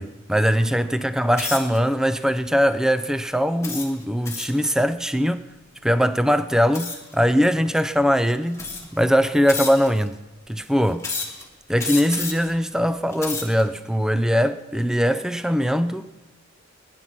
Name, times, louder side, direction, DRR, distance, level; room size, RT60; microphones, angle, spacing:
voice 1, 0.0-5.4 5.8-8.6 8.9-10.2 10.5-11.1 11.7-16.1, equal, 5° right, 0.5 m, -21 dB
sound 1, 1.3-1.8 2.4-2.7 3.6-4.6 6.7-7.1 8.0-8.1 8.5-9.0 9.5-10.1 11.0-11.4 11.8-12.5 13.0-13.6, left 4 dB, 15° left, 1.9 m, -31 dB
20.5 x 10.0 x 5.9 m
head